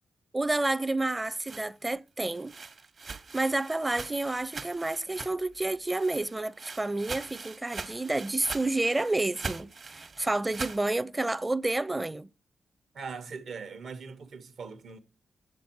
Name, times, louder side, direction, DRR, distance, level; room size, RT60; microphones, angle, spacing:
voice 1, 0.3-2.5 3.3-12.3, right 2 dB, 25° right, 0.5 m, -30 dB
sound 1, 1.1-5.6 5.9-10.8, right 4 dB, 60° right, 1.1 m, -42 dB
voice 2, 12.9-15.0, right 5 dB, 75° right, 1.1 m, -41 dB
7.4 x 7.1 x 4.5 m
supercardioid pair, 50°, 0 cm